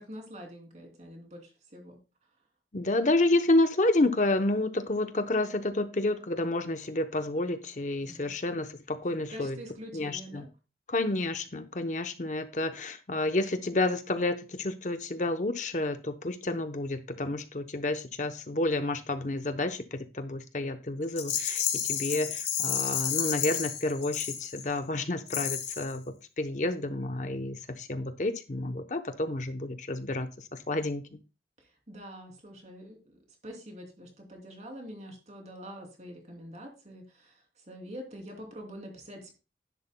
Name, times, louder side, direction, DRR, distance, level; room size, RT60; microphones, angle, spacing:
voice 1, 0.0-2.0 8.0-8.3 9.3-10.5 31.6-33.2 33.4-39.4, equal, 40° right, 2 dB, 2.9 m, -45 dB
voice 2, 2.7-9.6 9.9-10.4 10.9-26.0 26.4-31.2, left 2 dB, 45° left, 8 dB, 0.8 m, -30 dB
Rattle, 21.1-24.8 25.3-26.0, left 9 dB, 80° left, 2.0 m, -31 dB
11.0 x 10.5 x 2.2 m, 0.29 s
head